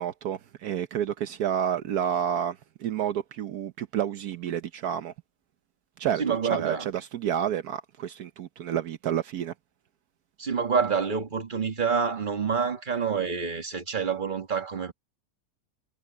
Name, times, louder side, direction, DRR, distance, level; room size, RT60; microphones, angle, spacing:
voice 1, 0.0-5.1 6.0-9.5, right 9 dB, 75° right, 1.3 m, -30 dB
voice 2, 6.2-6.9 10.4-14.9, right 6 dB, 30° right, 1.8 m, -27 dB
omnidirectional pair, 1.7 m